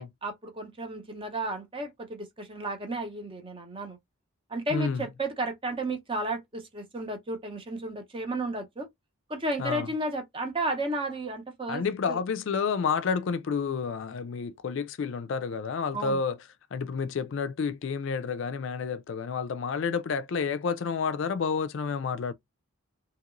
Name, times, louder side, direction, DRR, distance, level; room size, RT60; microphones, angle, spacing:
voice 1, 0.0-4.0 4.5-8.9 9.3-12.2 15.9-16.2, right 2 dB, 25° right, 0.7 m, -33 dB
voice 2, 4.7-5.0 9.6-9.9 11.7-16.4 16.7-22.3, left 5 dB, 60° left, 0.3 m, -30 dB
2.9 x 2.9 x 2.5 m
head